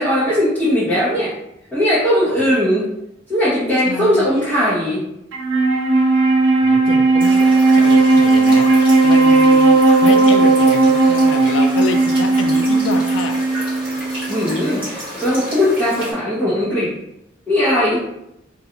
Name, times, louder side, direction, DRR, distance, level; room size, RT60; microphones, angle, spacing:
voice 1, 0.0-1.3 1.7-2.9 3.3-5.0 14.3-16.9 17.5-18.0, left 1 dB, 10° left, -12 dB, 0.7 m, -18 dB
voice 2, 3.9-4.3 6.6-13.4, left 4 dB, 70° left, 7 dB, 0.3 m, -28 dB
Wind instrument woodwind instrument, 5.3-14.8, right 3 dB, 85° right, 0.4 m, -15 dB
sound 1, 7.2-16.1, equal, 10° right, 1.1 m, -31 dB
2.5 x 2.2 x 2.8 m, 0.83 s
head